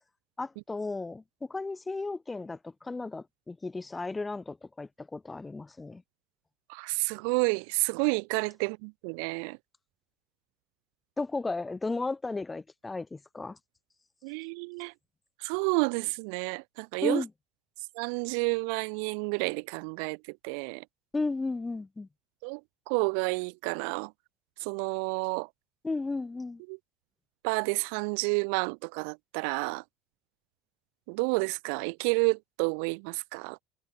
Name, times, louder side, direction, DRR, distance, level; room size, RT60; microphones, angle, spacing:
voice 1, 0.4-6.0 11.2-13.6 17.0-17.3 21.1-22.1 25.8-26.6, left 3 dB, 15° left, 1.6 m, -34 dB
voice 2, 6.7-9.6 14.2-14.9 15.4-17.2 17.9-20.8 22.4-22.6 22.9-24.1 24.6-25.5 26.7-26.8 27.4-29.8 31.1-33.6, right 40 dB or more, 75° right, 0.4 m, -30 dB
supercardioid pair, 110°, 0 cm